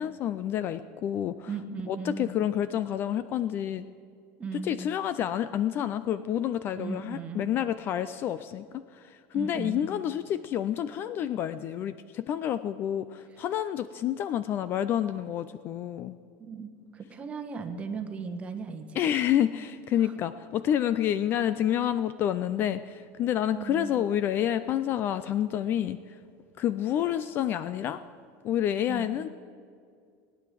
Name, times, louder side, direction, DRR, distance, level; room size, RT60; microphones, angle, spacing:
voice 1, 0.0-1.5 1.9-3.9 4.6-16.2 18.9-26.0 26.6-28.0 28.4-29.3, left 10 dB, 30° left, 14 dB, 0.4 m, -29 dB
voice 2, 1.5-2.4 4.4-4.8 6.8-7.5 9.3-9.9 16.4-19.0 20.0-20.1 23.6-24.0 28.9-29.2, right 5 dB, 20° right, 5 dB, 1.1 m, -37 dB
18.5 x 9.8 x 7.6 m, 2.2 s
cardioid pair, 170°, 7 cm